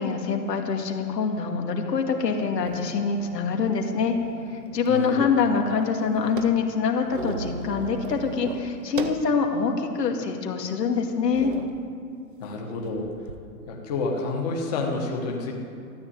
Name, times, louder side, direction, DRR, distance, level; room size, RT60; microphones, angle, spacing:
voice 1, 0.0-4.1 4.5-11.5, left 5 dB, 90° left, 3 dB, 2.4 m, -25 dB
sound 1, 2.0-2.1 2.6-3.2 3.9-4.9 5.2-5.3 5.6-9.3 9.9-10.0 10.7-10.8 11.3-11.8 12.8-13.4, right 4 dB, 35° right, 0.5 m, -37 dB
voice 2, 4.9-5.2 12.4-13.1 13.7-15.5, left 3 dB, 25° left, 0 dB, 1.3 m, -29 dB
13.5 x 9.9 x 8.6 m, 2.4 s
hypercardioid pair, 175°, 47 cm